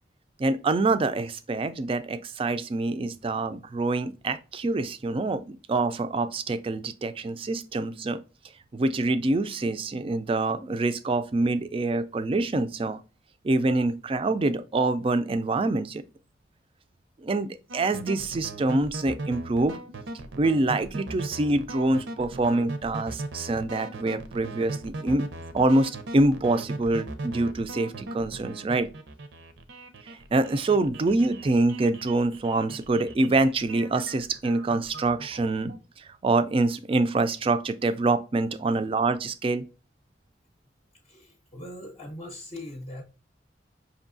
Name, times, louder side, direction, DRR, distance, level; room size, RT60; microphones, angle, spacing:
voice 1, 0.4-8.2 8.7-13.0 13.4-16.0 17.2-19.8 20.4-25.2 25.5-28.9 30.3-39.7, right 2 dB, 30° right, 0.3 m, -25 dB
sound 1, 17.7-35.8, right 2 dB, 75° right, 0.6 m, -38 dB
voice 2, 41.0-43.0, left 1 dB, 35° left, 0.6 m, -40 dB
5.3 x 2.7 x 2.6 m
head